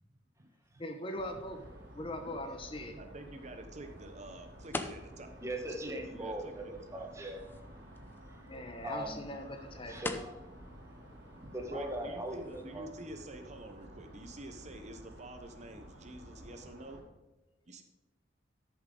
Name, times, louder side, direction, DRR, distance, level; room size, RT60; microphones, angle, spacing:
sound 1, 0.6-13.9, left 2 dB, 10° left, 0.7 m, -49 dB
voice 1, 0.8-1.6 1.9-3.0 8.5-10.0, left 1 dB, 30° left, 5 dB, 1.1 m, -41 dB
sound 2, 1.1-17.0, equal, 90° right, 2.9 m, -52 dB
voice 2, 3.0-5.3 5.8-7.1 11.4-17.0 17.7-17.8, right 1 dB, 40° right, 6 dB, 0.8 m, -48 dB
voice 3, 5.4-6.5 6.9-7.4 8.3-8.4 8.8-9.2 9.9-10.3 11.5-12.9, right 1 dB, 15° right, 3 dB, 1.4 m, -39 dB
13.0 x 7.2 x 3.8 m, 1.1 s
head